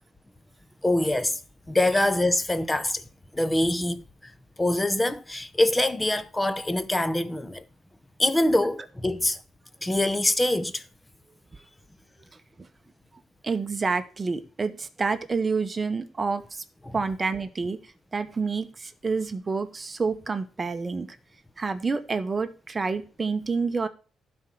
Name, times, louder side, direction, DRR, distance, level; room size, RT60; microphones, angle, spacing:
voice 1, 0.8-1.4 1.7-3.0 3.3-4.0 4.6-7.6 8.2-9.4 9.8-10.8 16.9-17.0, left 1 dB, 15° left, 0.9 m, -24 dB
voice 2, 13.4-16.6 16.9-17.8 18.1-21.1 21.6-23.9, right 4 dB, 30° right, 0.9 m, -28 dB
11.5 x 4.4 x 6.1 m
cardioid pair, 90°, 0 cm